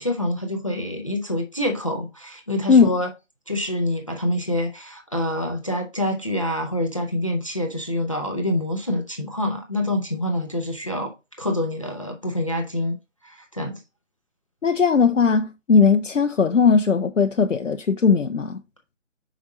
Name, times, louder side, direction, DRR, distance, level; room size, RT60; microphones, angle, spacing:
voice 1, 0.0-3.1 3.5-13.0 13.2-13.8, left 1 dB, 25° left, 0.7 m, -26 dB
voice 2, 14.6-18.6, left 5 dB, 75° left, 0.7 m, -18 dB
5.4 x 5.1 x 4.0 m
figure-of-eight pair, 155°, 38 cm